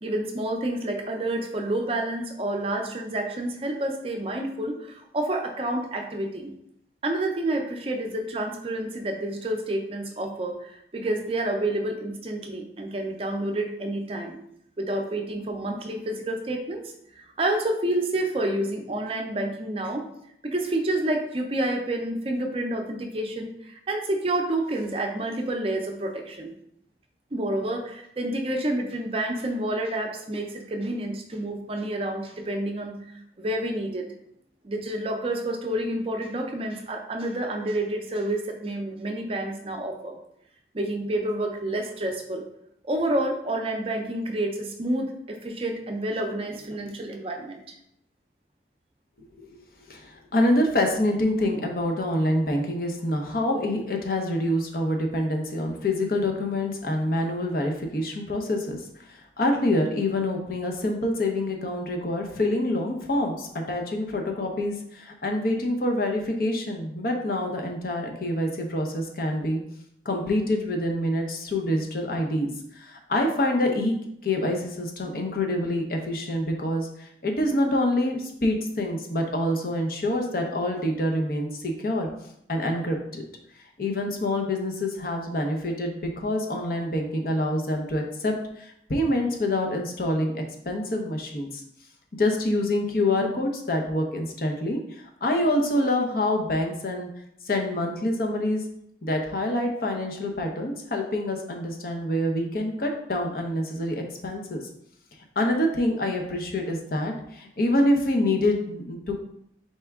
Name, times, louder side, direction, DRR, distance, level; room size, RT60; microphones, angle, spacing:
voice 1, 0.0-6.5 7.0-14.4 14.8-20.0 20.4-26.5 27.3-33.0 33.4-34.0 34.6-40.2 40.7-42.4 42.8-47.6, right 1 dB, 35° right, 3 dB, 0.6 m, -29 dB
voice 2, 49.9-58.8 59.1-69.6 70.0-74.0 74.2-82.1 82.5-83.2 83.8-91.6 92.2-97.1 97.5-98.6 99.0-104.6 105.4-109.1, left 1 dB, 55° left, 2 dB, 0.7 m, -26 dB
4.3 x 3.4 x 3.5 m, 0.74 s
head